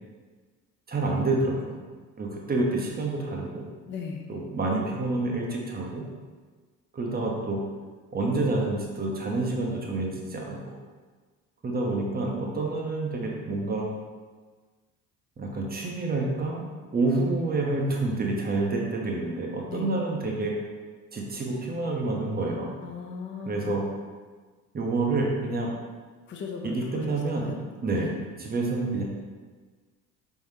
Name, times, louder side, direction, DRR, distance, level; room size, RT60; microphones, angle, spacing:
voice 1, 0.9-1.8 2.2-3.6 4.3-6.0 6.9-7.6 8.1-10.8 11.6-13.9 15.4-16.6 16.9-20.5 21.1-22.7 23.4-23.9 24.7-25.7 26.6-27.5 27.8-28.1 28.4-29.0, right 2 dB, 20° right, -1 dB, 0.9 m, -28 dB
voice 2, 3.9-4.3 19.7-20.0 22.8-23.7 26.3-27.6 27.9-28.2, left 5 dB, 25° left, 2 dB, 0.5 m, -37 dB
4.5 x 3.4 x 2.7 m, 1.4 s
figure-of-eight pair, 60°, 43 cm